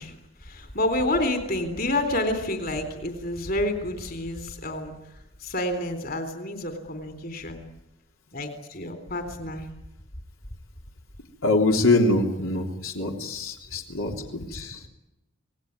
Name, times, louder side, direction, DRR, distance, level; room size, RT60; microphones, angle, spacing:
voice 1, 0.0-4.9 5.4-7.6 8.3-9.7 13.6-13.7, left 1 dB, 45° left, 8 dB, 3.7 m, -29 dB
voice 2, 11.4-14.8, left 2 dB, 75° left, 2 dB, 3.3 m, -24 dB
26.5 x 19.0 x 9.7 m, 0.92 s
head